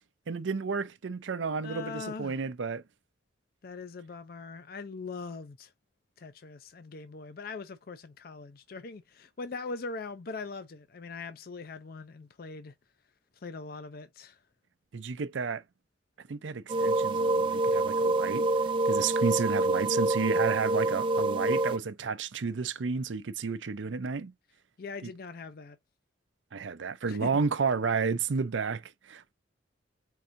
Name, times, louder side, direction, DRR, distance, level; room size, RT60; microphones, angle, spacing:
voice 1, 0.3-2.8 14.9-15.6 16.3-18.5 18.8-24.3 25.0-25.1 26.5-29.3, right 5 dB, 85° right, 0.5 m, -31 dB
voice 2, 1.6-2.4 3.6-5.7 6.2-12.8 13.4-14.4 24.8-25.8 27.1-27.3, left 4 dB, 50° left, 0.5 m, -41 dB
sound 1, 16.7-21.8, right 2 dB, 25° right, 0.3 m, -27 dB
4.7 x 2.7 x 2.5 m
head